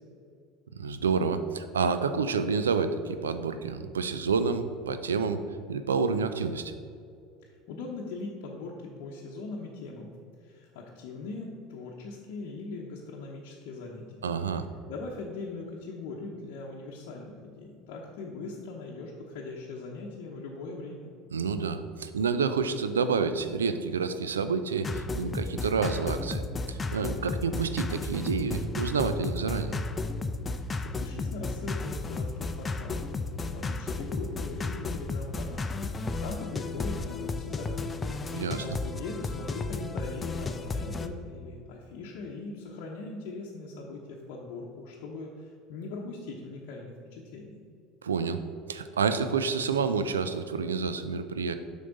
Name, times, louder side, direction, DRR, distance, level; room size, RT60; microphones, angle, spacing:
voice 1, 0.7-5.4 5.7-6.7 14.2-14.7 21.3-26.4 26.7-29.8 38.3-38.6 48.0-48.4 48.7-51.5, right 5 dB, 85° right, 10 dB, 0.4 m, -29 dB
voice 2, 7.4-10.1 10.4-14.2 14.9-21.1 30.8-33.1 33.4-38.0 38.5-47.6, left 3 dB, 65° left, -3 dB, 0.8 m, -40 dB
sound 1, 24.8-41.1, left 3 dB, 25° left, 0.5 m, -33 dB
7.7 x 5.3 x 3.9 m, 2.5 s
hypercardioid pair, 75°, 0 cm